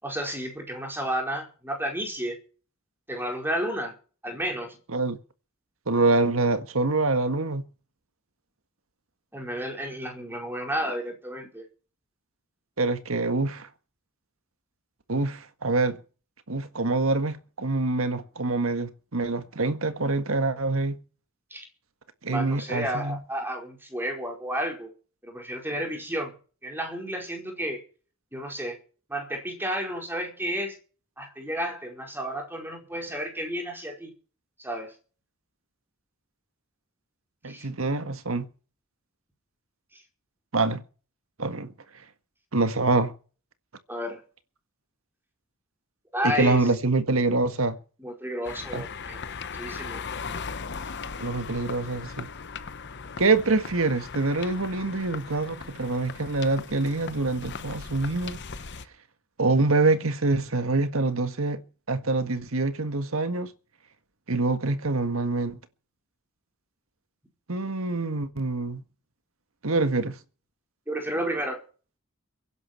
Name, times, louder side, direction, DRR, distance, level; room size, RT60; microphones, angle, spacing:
voice 1, 0.0-2.4 3.1-3.9 4.2-4.8 9.3-11.6 21.5-21.7 22.2-24.9 25.2-26.3 26.6-27.8 28.3-28.8 29.1-30.8 31.2-34.1 34.6-34.9 37.5-37.7 39.9-40.0 43.9-44.2 46.1-46.7 48.0-49.2 49.5-50.0 70.9-71.6, equal, 10° right, 4.8 m, -32 dB
voice 2, 5.9-7.6 12.8-13.7 15.1-16.0 16.5-21.0 22.2-23.2 37.4-38.5 40.5-40.8 41.4-41.7 42.5-43.1 46.2-47.8 48.7-48.8 51.2-52.3 53.2-58.4 59.4-61.6 61.9-63.5 64.3-65.6 67.5-68.8 69.6-70.2, right 3 dB, 75° right, 1.7 m, -25 dB
sound 1, 48.4-58.9, left 5 dB, 55° left, 1.0 m, -38 dB
23.0 x 11.0 x 4.5 m
head